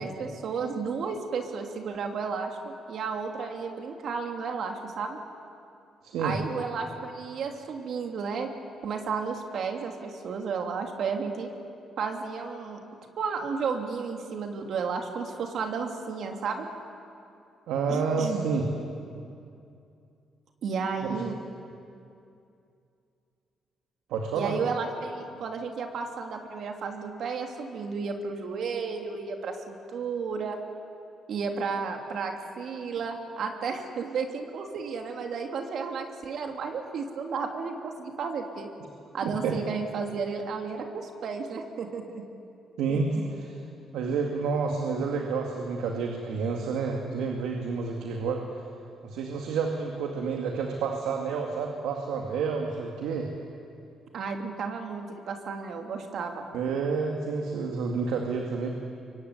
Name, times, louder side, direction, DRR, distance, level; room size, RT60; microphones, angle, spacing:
voice 1, 0.0-5.2 6.2-8.5 8.8-11.5 12.0-12.8 13.2-16.7 17.9-18.4 20.6-21.4 24.3-30.6 31.3-38.7 39.1-42.2 42.9-43.0 54.1-56.4, right 5 dB, 65° right, 3 dB, 3.1 m, -33 dB
voice 2, 6.0-6.4 17.7-18.6 21.1-21.3 24.1-24.6 39.4-39.6 42.8-43.1 43.9-48.4 49.0-53.3 56.5-58.7, right 5 dB, 90° right, 2 dB, 2.2 m, -29 dB
24.5 x 23.5 x 9.6 m, 2.6 s
cardioid pair, 90°, 0 cm